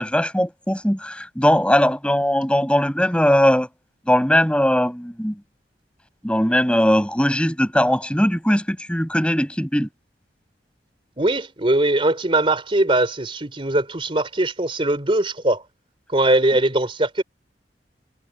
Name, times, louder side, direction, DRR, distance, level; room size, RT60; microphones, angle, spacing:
voice 1, 0.0-3.7 4.1-5.4 6.2-9.9, equal, 5° left, 6.3 m, -19 dB
voice 2, 11.2-15.6 16.1-17.2, right 1 dB, 30° right, 3.7 m, -20 dB
head